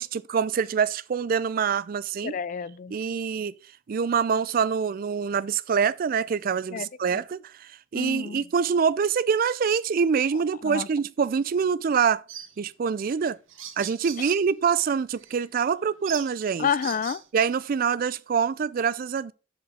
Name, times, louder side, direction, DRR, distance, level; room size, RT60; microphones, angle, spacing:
voice 1, 0.0-2.3 2.9-3.6 3.9-12.2 12.6-13.4 13.8-16.7 17.3-19.3, right 6 dB, 45° right, 0.3 m, -25 dB
voice 2, 2.2-2.9 6.7-6.9 7.9-8.4 10.6-10.9 16.6-17.2, left 7 dB, 40° left, 0.3 m, -29 dB
sound 1, 12.3-12.5 13.2-13.3 13.5-14.5 15.2-15.4 16.0-17.2, right 9 dB, 75° right, 1.1 m, -39 dB
6.7 x 4.9 x 4.9 m
head